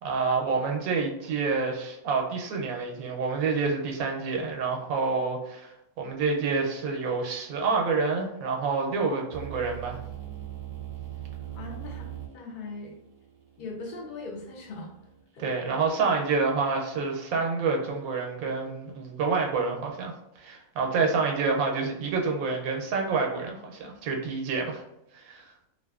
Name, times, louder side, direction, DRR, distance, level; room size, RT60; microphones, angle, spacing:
voice 1, 0.0-10.0 15.4-24.8 25.1-25.5, right 4 dB, 90° right, 1 dB, 1.0 m, -28 dB
sound 1, 9.3-15.2, right 11 dB, 50° right, 0.4 m, -41 dB
voice 2, 11.5-12.9 13.6-14.9 15.3-15.5, left 3 dB, 65° left, -1 dB, 0.5 m, -40 dB
2.4 x 2.4 x 2.3 m, 0.84 s
omnidirectional pair, 1.5 m